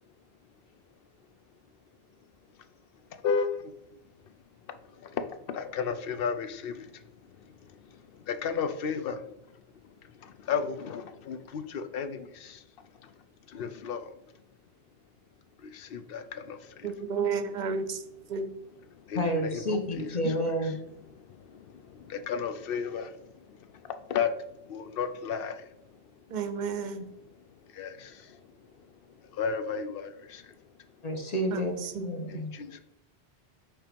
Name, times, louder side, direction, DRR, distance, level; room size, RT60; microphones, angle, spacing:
voice 1, 5.5-6.7 8.3-9.1 10.5-12.2 13.5-14.0 15.9-16.2 19.1-20.4 22.3-23.1 24.1-24.3 24.7-25.5 27.8-27.9 29.4-30.1 32.6-32.7, left 6 dB, 65° left, 9 dB, 0.7 m, -31 dB
voice 2, 16.8-18.0 18.3-18.5 26.3-27.1 31.5-32.1, right 5 dB, 55° right, 10 dB, 0.6 m, -32 dB
voice 3, 19.1-20.8 31.0-32.5, equal, 40° left, 3 dB, 1.1 m, -30 dB
5.6 x 3.5 x 5.1 m, 0.84 s
omnidirectional pair, 1.1 m